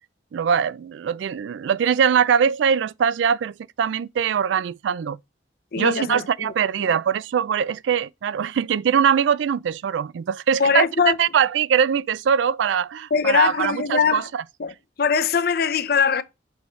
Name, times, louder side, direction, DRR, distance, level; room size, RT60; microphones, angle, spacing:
voice 1, 0.3-5.2 5.8-14.4, right 7 dB, 75° right, 0.3 m, -22 dB
voice 2, 5.7-6.5 6.8-6.9 10.6-11.2 13.1-14.2 14.6-14.7 15.0-16.2, left 6 dB, 55° left, 0.6 m, -21 dB
6.3 x 5.4 x 3.1 m
head